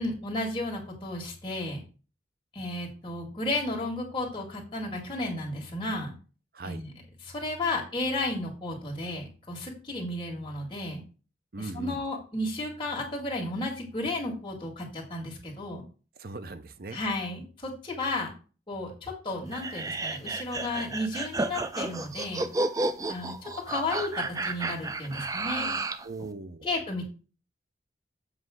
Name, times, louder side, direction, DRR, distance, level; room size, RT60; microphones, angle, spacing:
voice 1, 0.0-1.8 2.5-6.1 6.6-6.9 7.2-11.0 11.6-15.8 16.9-18.3 18.7-22.4 23.1-25.7 26.6-27.1, left 2 dB, 25° left, -1 dB, 2.1 m, -33 dB
voice 2, 11.5-12.0 16.2-17.0 26.0-26.7, right 2 dB, 55° right, 11 dB, 0.7 m, -39 dB
sound 1, 19.5-26.1, right 2 dB, 20° right, 0.4 m, -32 dB
7.5 x 3.2 x 6.2 m, 0.36 s
head